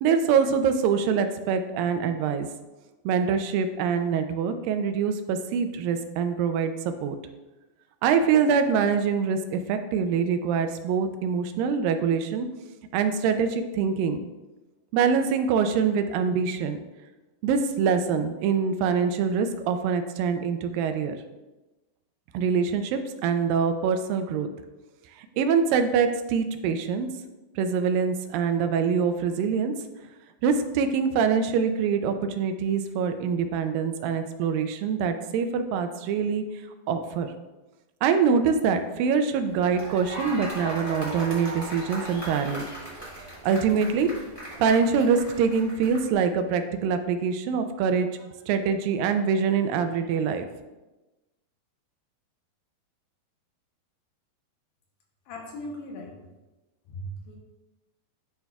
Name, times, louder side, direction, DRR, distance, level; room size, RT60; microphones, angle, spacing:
voice 1, 0.0-2.5 3.1-7.2 8.0-12.5 12.9-14.2 14.9-16.8 17.4-21.2 22.3-24.5 25.4-27.1 27.6-29.7 30.4-36.4 36.9-37.3 38.0-42.6 43.4-44.1 44.6-48.1 48.5-50.5, right 6 dB, 85° right, 8 dB, 2.3 m, -24 dB
sound 1, 39.5-46.1, right 1 dB, 30° left, 0.4 m, -38 dB
voice 2, 55.3-56.1 56.9-57.4, equal, 75° left, 0 dB, 2.2 m, -38 dB
11.5 x 4.1 x 2.3 m, 1.1 s
omnidirectional pair, 4.0 m